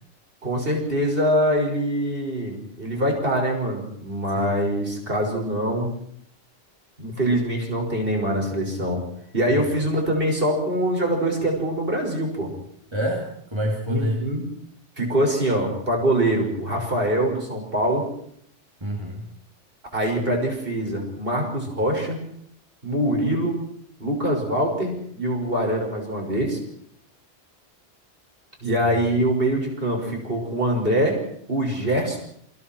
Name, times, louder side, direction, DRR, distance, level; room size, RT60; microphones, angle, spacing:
voice 1, 0.4-6.0 7.0-9.0 9.3-12.5 13.9-14.4 15.0-18.1 19.9-22.2 22.8-23.6 24.0-26.6 28.6-31.2 31.5-32.2, right 1 dB, 50° right, 1 dB, 6.4 m, -24 dB
voice 2, 12.9-14.3 18.8-19.3, equal, 25° right, 0 dB, 3.1 m, -27 dB
28.0 x 25.5 x 4.7 m, 0.69 s
omnidirectional pair, 1.2 m